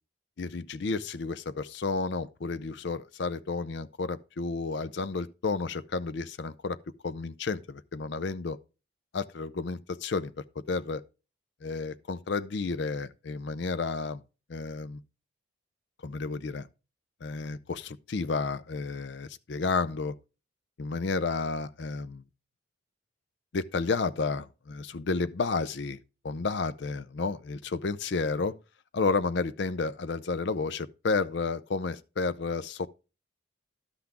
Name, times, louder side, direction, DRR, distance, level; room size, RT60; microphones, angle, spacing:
voice 1, 0.4-6.8 7.0-8.6 9.1-11.0 11.6-14.2 14.5-15.0 16.0-16.7 17.2-20.1 20.8-22.2 23.5-26.0 26.2-28.5 28.9-32.9, left 4 dB, 60° left, 0.5 m, -31 dB
11.5 x 5.9 x 3.5 m
head